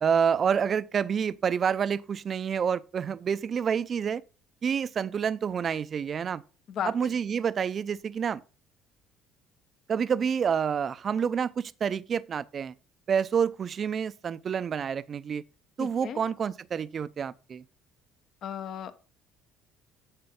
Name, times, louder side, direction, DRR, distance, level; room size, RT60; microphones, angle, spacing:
voice 1, 0.0-4.2 4.6-6.4 6.9-8.4 9.9-12.7 13.1-15.4 15.8-17.6, right 7 dB, 40° right, 0.5 m, -28 dB
voice 2, 6.7-7.1 15.8-16.2 18.4-19.0, left 8 dB, 55° left, 0.9 m, -35 dB
8.8 x 6.7 x 3.6 m
supercardioid pair, 90°, 0 cm